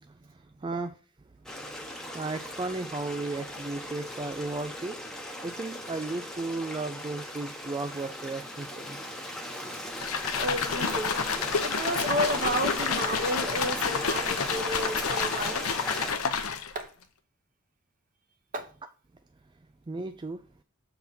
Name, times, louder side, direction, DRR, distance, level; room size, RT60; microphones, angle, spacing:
voice 1, 0.0-1.0 1.3-5.0 5.4-9.0 19.9-20.4, right 3 dB, 20° right, 0.3 m, -35 dB
Stream, 1.5-16.1, left 1 dB, 5° left, 0.9 m, -38 dB
sound 1, 9.9-16.8, left 6 dB, 85° left, 0.7 m, -29 dB
voice 2, 10.4-11.2 11.6-15.7 16.7-16.9 18.5-18.7, equal, 40° right, 1.0 m, -32 dB
7.2 x 3.9 x 4.1 m
head